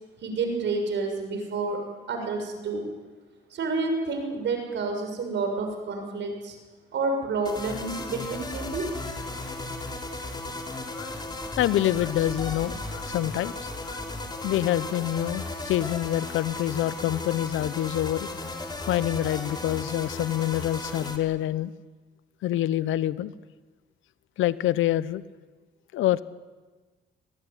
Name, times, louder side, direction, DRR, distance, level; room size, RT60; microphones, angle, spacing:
voice 1, 0.2-1.8 2.1-2.8 3.5-6.6 6.9-8.9, right 3 dB, 65° right, 4 dB, 6.5 m, -29 dB
sound 1, 7.4-21.2, left 2 dB, 20° left, 3.7 m, -35 dB
voice 2, 11.6-14.0 14.4-18.3 18.9-21.7 22.4-23.3 24.4-25.2 25.9-26.2, left 13 dB, 85° left, 17 dB, 0.9 m, -26 dB
24.0 x 18.5 x 9.9 m, 1.3 s
cardioid pair, 90°, 20 cm